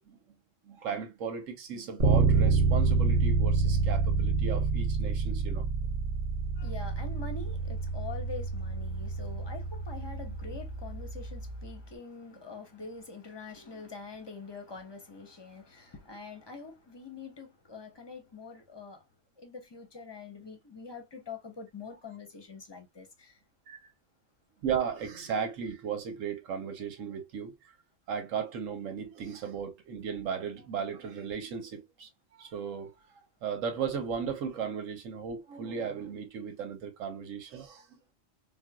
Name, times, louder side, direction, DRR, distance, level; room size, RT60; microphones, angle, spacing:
voice 1, 0.6-5.7 10.3-10.4 23.7-23.9 24.6-27.7 28.1-32.9 33.4-38.0, right 7 dB, 90° right, 1.2 m, -36 dB
Bass guitar, 2.0-11.8, right 4 dB, 70° right, 1.1 m, -28 dB
voice 2, 6.6-19.0 19.4-23.4, left 4 dB, 25° left, 0.6 m, -45 dB
4.5 x 2.1 x 2.2 m
omnidirectional pair, 1.3 m